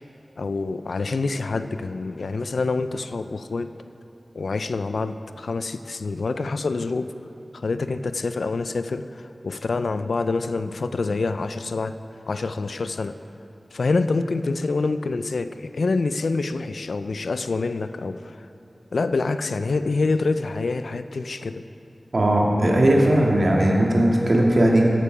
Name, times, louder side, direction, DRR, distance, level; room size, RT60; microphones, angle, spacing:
voice 1, 0.4-3.7 4.3-7.1 7.5-12.0 12.3-13.2 13.7-18.4 18.9-21.6, left 3 dB, 85° left, 11 dB, 0.4 m, -26 dB
voice 2, 22.1-24.8, right 1 dB, 60° right, -2 dB, 1.8 m, -18 dB
14.0 x 6.7 x 5.0 m, 2.8 s
wide cardioid pair, 50°, 0 cm